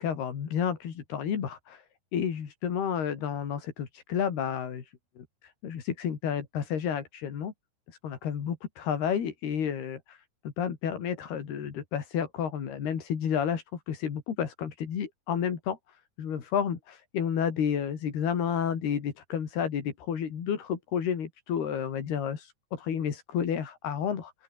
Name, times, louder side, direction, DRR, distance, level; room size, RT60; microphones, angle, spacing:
voice 1, 0.0-1.8 2.1-7.5 7.9-10.2 10.6-15.8 16.2-24.3, left 8 dB, 75° left, 5.2 m, -31 dB
open air
omnidirectional pair, 4.7 m